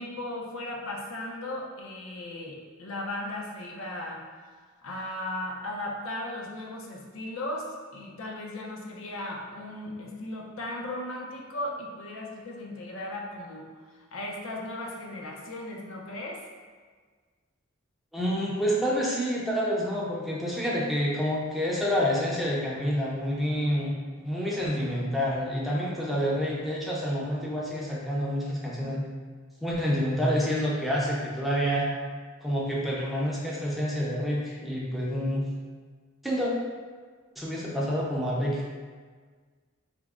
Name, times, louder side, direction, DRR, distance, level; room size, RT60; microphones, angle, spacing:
voice 1, 0.0-4.2 4.8-16.5, left 1 dB, 75° left, -1 dB, 0.5 m, -36 dB
voice 2, 18.1-29.0 29.6-31.9 32.4-35.5 36.2-36.5 37.4-38.8, equal, ahead, -6 dB, 0.5 m, -28 dB
3.4 x 2.0 x 3.5 m, 1.5 s
head